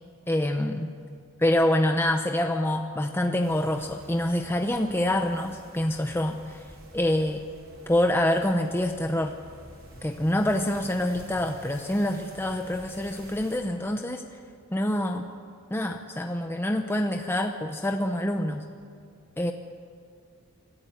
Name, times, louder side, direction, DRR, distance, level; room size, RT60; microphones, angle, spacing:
voice 1, 0.3-0.9 1.4-7.5 7.9-9.4 10.0-14.4 14.7-15.3 15.7-18.7 19.4-19.5, left 1 dB, 10° left, 5 dB, 0.7 m, -26 dB
sound 1, 3.4-13.6, right 1 dB, 65° right, 4.8 m, -50 dB
25.0 x 15.5 x 8.0 m, 2.3 s
head